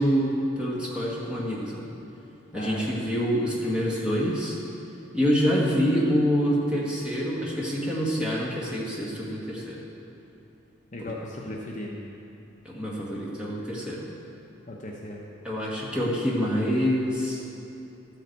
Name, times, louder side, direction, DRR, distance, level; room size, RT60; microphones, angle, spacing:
voice 1, 0.0-1.9 2.5-4.6 5.1-9.8 11.4-11.6 12.6-14.0 15.4-17.4, equal, 5° right, -6 dB, 1.6 m, -26 dB
voice 2, 2.5-3.1 10.9-12.0 14.7-15.2, left 1 dB, 35° left, -2 dB, 0.8 m, -37 dB
13.0 x 7.9 x 4.6 m, 2.9 s
head